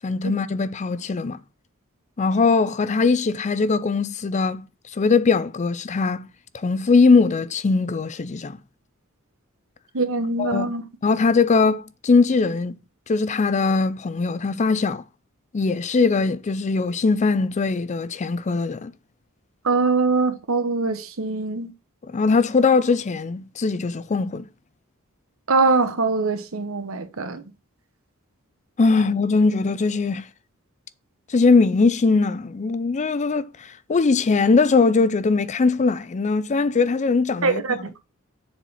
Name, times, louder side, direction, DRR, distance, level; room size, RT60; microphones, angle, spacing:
voice 1, 0.0-1.4 2.2-4.6 4.9-6.3 6.5-8.6 10.4-10.7 11.0-12.8 13.1-15.0 15.5-18.9 22.1-24.5 28.8-30.2 31.3-37.8, left 4 dB, 35° left, 0.4 m, -20 dB
voice 2, 9.9-10.8 19.6-21.7 25.5-27.4 37.4-38.0, right 3 dB, 70° right, 1.0 m, -22 dB
7.2 x 4.4 x 5.5 m
head